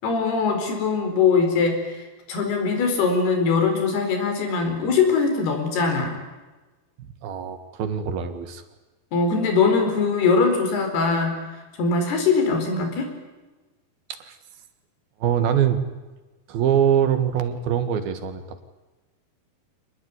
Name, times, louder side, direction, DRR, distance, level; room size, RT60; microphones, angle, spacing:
voice 1, 0.0-6.2 9.1-13.1, left 4 dB, 85° left, 5 dB, 6.4 m, -22 dB
voice 2, 7.0-8.6 14.1-14.4 15.2-15.8 16.5-18.6, right 9 dB, 75° right, 9 dB, 3.6 m, -23 dB
26.0 x 20.0 x 9.7 m, 1.2 s
omnidirectional pair, 4.5 m